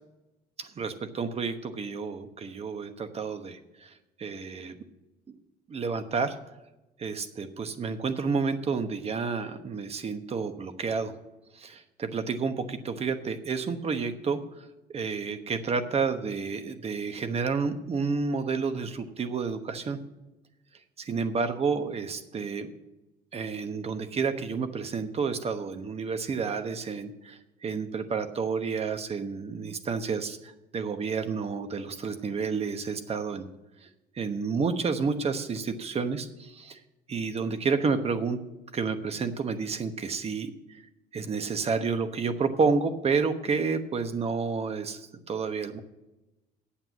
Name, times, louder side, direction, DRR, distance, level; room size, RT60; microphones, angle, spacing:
voice 1, 0.6-3.9 4.2-4.7 5.7-6.4 7.0-11.1 11.5-14.4 14.9-20.0 21.0-22.7 23.3-33.5 33.8-33.9 34.2-36.8 37.1-38.4 38.7-40.5 41.1-45.8, right 5 dB, 35° right, 9 dB, 1.1 m, -30 dB
8.7 x 7.6 x 8.3 m, 0.99 s
cardioid pair, 110°, 17 cm